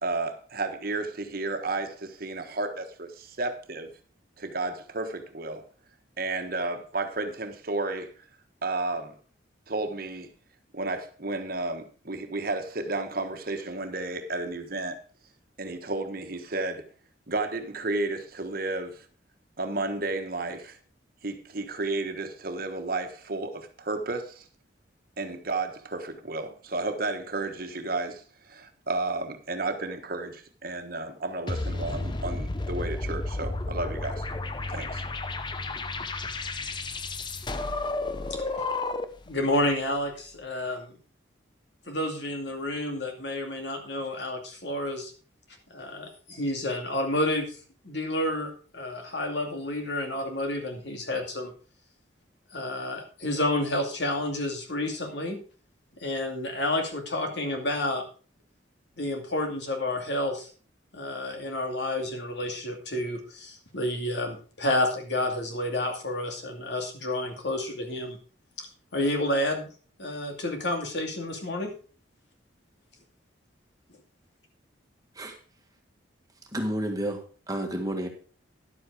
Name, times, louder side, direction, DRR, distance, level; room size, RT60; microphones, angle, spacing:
voice 1, 0.0-3.9 4.4-5.6 6.2-8.1 8.6-9.1 9.7-10.3 10.7-15.0 15.6-16.9 17.3-19.0 19.6-20.8 21.2-24.5 25.2-34.3 34.7-35.0, right 2 dB, 50° right, 1.3 m, -32 dB
sound 1, 31.5-39.3, left 2 dB, 25° left, 0.6 m, -32 dB
voice 2, 39.3-40.9 41.9-45.1 45.7-47.6 47.8-51.5 52.5-55.4 56.0-58.0 59.0-60.5 60.9-68.2 68.6-68.7 68.9-69.7 70.0-71.7, left 1 dB, 65° left, 2.5 m, -30 dB
voice 3, 76.5-77.2 77.5-78.1, right 1 dB, 20° right, 1.8 m, -30 dB
11.0 x 7.9 x 4.9 m
head